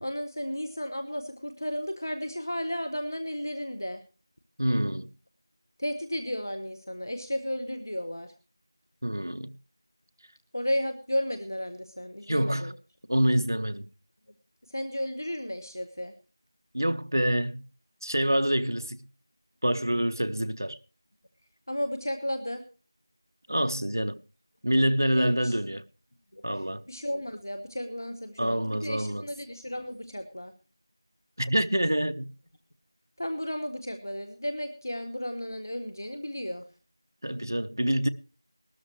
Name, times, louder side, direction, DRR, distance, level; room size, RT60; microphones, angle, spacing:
voice 1, 0.0-4.0 5.8-8.3 10.5-12.7 14.7-16.1 21.7-22.6 25.2-25.5 26.3-26.4 26.9-30.5 33.2-36.6, equal, 50° left, 1.3 m, -33 dB
voice 2, 4.6-5.1 9.0-9.5 12.3-12.7 13.1-13.9 16.7-17.6 18.0-19.0 19.6-20.8 23.5-24.2 24.6-25.8 26.4-26.9 28.4-29.3 31.4-32.3 37.2-38.1, right 1 dB, 50° right, 0.7 m, -26 dB
19.0 x 12.5 x 3.2 m
figure-of-eight pair, 180°, 2 cm